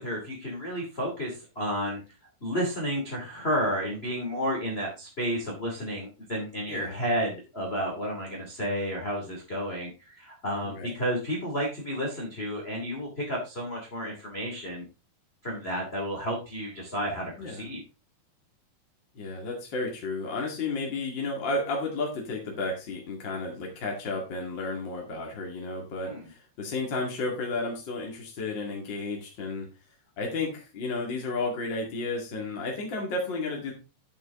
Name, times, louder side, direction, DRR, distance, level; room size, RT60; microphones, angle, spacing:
voice 1, 0.0-2.0 2.4-14.8 15.4-17.8 26.0-26.3, equal, 20° left, -3 dB, 1.5 m, -31 dB
voice 2, 10.6-10.9 17.4-17.6 19.1-29.7 30.2-33.7, left 3 dB, 45° left, 0 dB, 1.5 m, -32 dB
8.7 x 8.7 x 3.7 m, 0.30 s
omnidirectional pair, 5.6 m